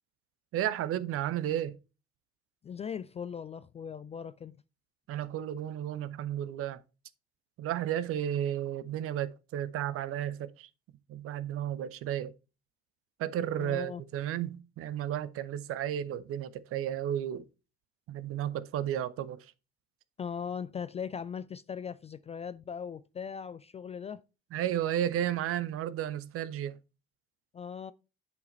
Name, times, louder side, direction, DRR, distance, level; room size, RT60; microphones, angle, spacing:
voice 1, 0.5-1.8 5.1-6.8 7.6-10.7 11.1-12.3 13.2-17.4 18.1-19.5 24.5-26.8, right 11 dB, 45° right, 0.7 m, -33 dB
voice 2, 2.6-4.6 13.6-14.0 20.2-24.2 27.5-27.9, left 7 dB, 20° left, 0.3 m, -39 dB
10.5 x 4.6 x 3.1 m
figure-of-eight pair, 55°, 32 cm